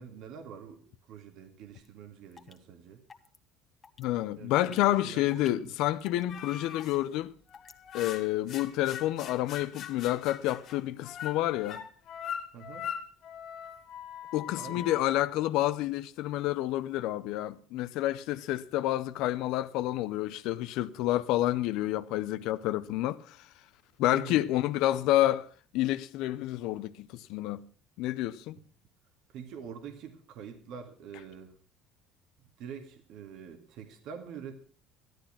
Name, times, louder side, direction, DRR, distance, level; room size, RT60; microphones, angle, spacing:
voice 1, 0.0-3.0 4.3-5.8 12.5-12.9 14.6-14.9 24.1-24.6 29.3-31.5 32.6-34.5, right 7 dB, 65° right, 2.0 m, -45 dB
sound 1, 1.8-1.9 2.3-2.6 3.1-3.4 3.8-4.0 4.6-4.8 5.3-5.7 6.0-6.2 6.8-7.0 7.5-7.7, left 5 dB, 25° left, 1.6 m, -50 dB
voice 2, 4.0-7.3 7.9-11.8 14.3-23.5 24.0-27.6 28.0-28.6, left 14 dB, 75° left, 0.6 m, -29 dB
sound 2, 6.3-7.0 7.5-15.0, left 9 dB, 55° left, 2.1 m, -41 dB
13.5 x 12.0 x 5.8 m
cardioid pair, 110°, 0 cm